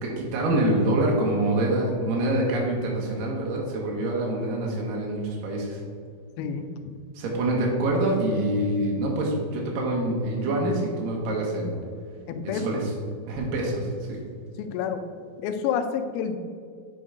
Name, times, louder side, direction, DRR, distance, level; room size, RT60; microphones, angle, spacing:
voice 1, 0.0-5.8 7.2-11.7 12.4-12.9 13.3-14.2, right 1 dB, 70° right, -2 dB, 2.7 m, -26 dB
voice 2, 6.4-6.7 12.3-12.8 14.6-15.0 15.4-16.4, left 7 dB, 85° left, 8 dB, 2.5 m, -28 dB
7.9 x 5.4 x 3.7 m, 2.2 s
omnidirectional pair, 4.4 m